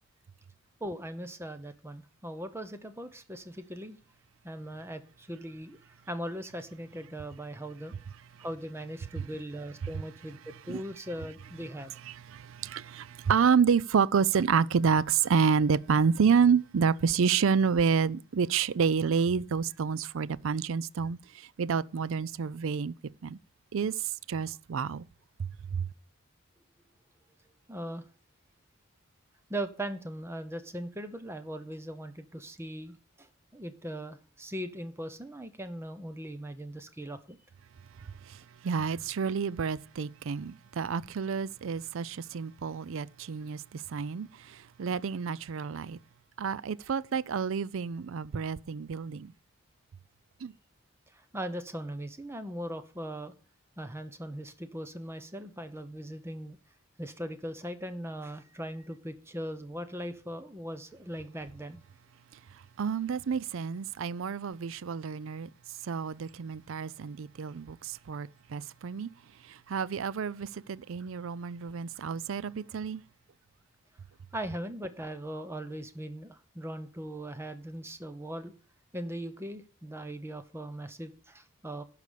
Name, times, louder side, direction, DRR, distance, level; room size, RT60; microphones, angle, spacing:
voice 1, 0.8-4.0 4.4-5.8 6.1-8.0 8.4-11.9 27.7-28.0 29.5-37.4 51.3-53.3 53.8-56.6 57.0-61.8 74.3-78.5 78.9-81.8, right 1 dB, 10° right, 0.8 m, -39 dB
voice 2, 12.1-22.9 23.2-23.4 23.7-23.9 24.3-25.1 25.4-25.9 38.3-38.4 38.6-46.0 46.4-49.3 50.4-50.5 62.8-65.5 65.9-69.1 69.5-73.0, right 6 dB, 65° right, 0.4 m, -29 dB
11.5 x 5.0 x 6.8 m
head